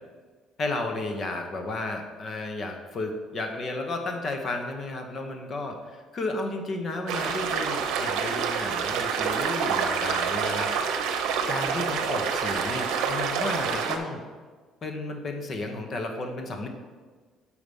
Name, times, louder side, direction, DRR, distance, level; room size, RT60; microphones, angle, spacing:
voice 1, 0.6-10.7 11.5-14.2 14.8-16.7, left 2 dB, 45° left, 4 dB, 1.1 m, -33 dB
sound 1, 7.1-14.0, right 6 dB, 80° right, 0.8 m, -27 dB
6.8 x 4.9 x 5.4 m, 1.4 s
cardioid pair, 90°, 0 cm